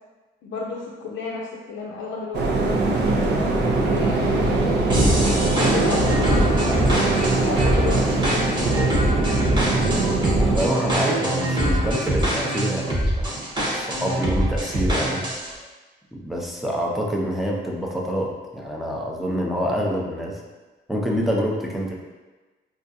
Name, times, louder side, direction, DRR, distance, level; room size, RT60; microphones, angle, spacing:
voice 1, 0.4-6.9 7.4-8.9, left 4 dB, 70° left, -2 dB, 0.5 m, -32 dB
sound 1, 2.3-10.7, right 2 dB, 60° right, 0.6 m, -22 dB
sound 2, 4.9-15.5, right 1 dB, 25° right, 1.0 m, -23 dB
voice 2, 10.5-13.4 13.7-15.2 16.1-20.4 20.9-21.9, equal, ahead, -2 dB, 0.6 m, -26 dB
4.3 x 2.4 x 2.7 m, 1.2 s
cardioid pair, 90°, 20 cm